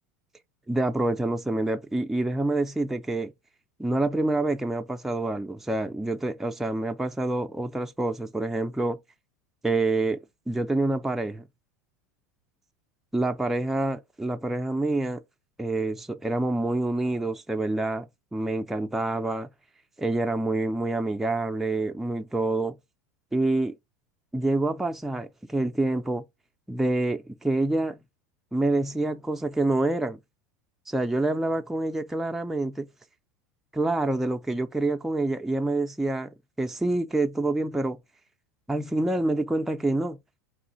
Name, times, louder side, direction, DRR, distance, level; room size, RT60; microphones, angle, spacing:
voice 1, 0.7-3.3 3.8-9.0 9.6-10.2 10.5-11.4 13.1-15.2 15.6-19.5 20.0-22.7 23.3-23.7 24.3-26.2 26.7-28.0 28.5-30.2 30.9-32.9 33.7-36.3 36.6-38.0 38.7-40.2, right 2 dB, 5° right, 0.4 m, -27 dB
4.8 x 3.1 x 2.5 m
hypercardioid pair, 100°, 9 cm